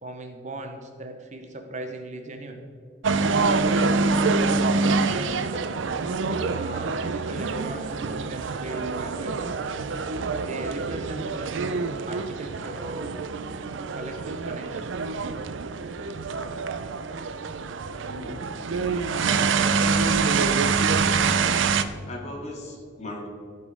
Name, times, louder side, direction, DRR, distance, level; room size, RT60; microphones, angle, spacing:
voice 1, 0.0-2.7 3.4-5.8 6.4-9.5 10.4-13.1 13.9-14.9, right 1 dB, 40° right, 5 dB, 0.9 m, -38 dB
sound 1, 3.0-21.8, right 4 dB, 70° right, 0.5 m, -26 dB
voice 2, 18.0-18.5 22.1-23.3, left 1 dB, 35° left, -1 dB, 2.1 m, -38 dB
15.0 x 5.4 x 5.0 m, 2.1 s
head